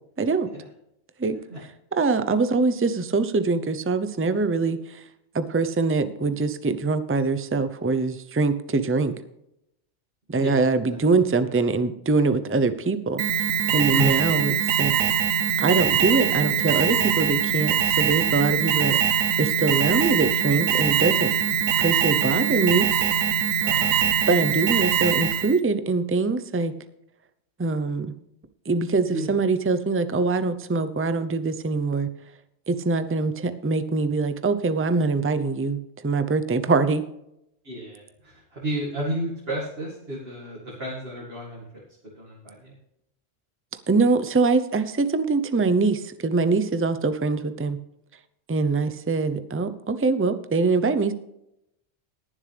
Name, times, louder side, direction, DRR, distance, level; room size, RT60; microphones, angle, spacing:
voice 1, 0.2-0.5 1.2-1.4 1.9-5.0 5.3-9.1 10.3-13.2 13.7-14.5 14.8-14.9 15.6-21.3 21.8-22.9 24.3-26.7 27.6-28.1 28.7-32.1 32.7-37.0 43.9-47.8 48.5-51.1, right 3 dB, 15° right, 12 dB, 0.4 m, -23 dB
voice 2, 10.4-11.0 11.4-11.6 13.9-14.2 23.6-23.9 29.0-29.3 37.6-41.8 42.1-42.7, right 1 dB, 50° right, -4 dB, 2.4 m, -32 dB
Alarm, 13.2-25.6, right 9 dB, 85° right, 1.1 m, -23 dB
20.0 x 7.4 x 3.4 m, 0.80 s
omnidirectional pair, 1.3 m